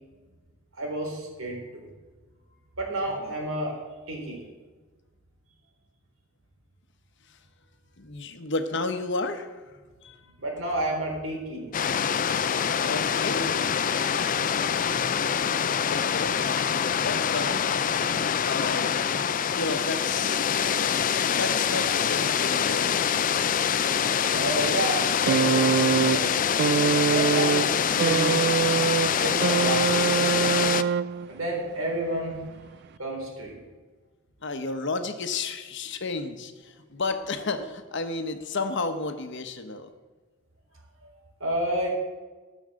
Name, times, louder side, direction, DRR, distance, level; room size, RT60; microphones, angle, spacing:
voice 1, 0.8-1.9 2.8-3.8 4.1-4.4 10.4-11.7 14.5-15.1 24.3-26.2 27.1-28.3 29.2-30.1 31.3-32.4 33.0-33.6 41.0-41.1 41.4-41.9, right 1 dB, 85° right, -1 dB, 3.9 m, -30 dB
voice 2, 8.0-10.2 12.8-13.7 15.8-16.5 17.0-18.0 18.4-18.9 19.5-20.5 21.3-22.9 34.4-39.9, left 3 dB, 60° left, 8 dB, 1.1 m, -32 dB
sound 1, 11.7-30.8, left 8 dB, 40° left, 0.5 m, -25 dB
sound 2, 25.3-31.4 32.5-32.6, right 6 dB, 55° right, 0.3 m, -24 dB
14.5 x 6.4 x 7.6 m, 1.3 s
head